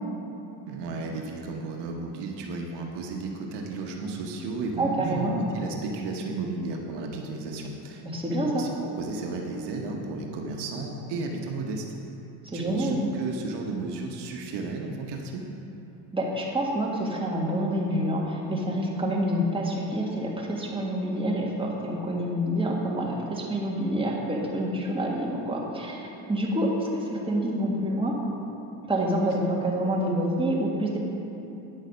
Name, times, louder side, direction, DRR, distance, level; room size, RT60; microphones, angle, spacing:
voice 1, 0.7-8.0 8.3-8.7 9.0-11.9 12.5-15.4, right 3 dB, 65° right, 1 dB, 1.1 m, -33 dB
voice 2, 4.8-5.3 8.0-8.7 12.4-13.0 16.1-28.2 28.9-31.0, right 1 dB, 10° right, -3 dB, 1.7 m, -27 dB
9.5 x 6.5 x 5.1 m, 2.9 s
supercardioid pair, 95°, 43 cm